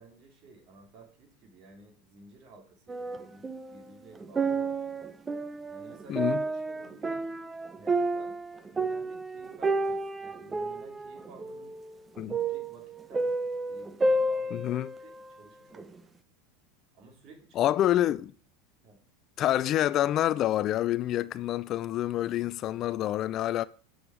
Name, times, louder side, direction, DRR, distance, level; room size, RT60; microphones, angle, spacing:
voice 1, 0.0-5.1 5.7-7.3 7.8-8.4 8.7-11.7 12.2-13.4 13.7-14.7 15.0-16.0 16.9-17.7 18.1-18.2 18.8-19.0, right 3 dB, 45° right, 3.5 m, -54 dB
sound 1, 2.9-3.8 4.2-15.3 15.7-15.8, right 2 dB, 20° right, 0.7 m, -31 dB
voice 2, 6.1-6.4 12.2-12.3 14.5-14.9 17.6-18.3 19.4-23.7, left 13 dB, 45° left, 0.4 m, -27 dB
8.6 x 6.4 x 5.0 m
hypercardioid pair, 105°, 0 cm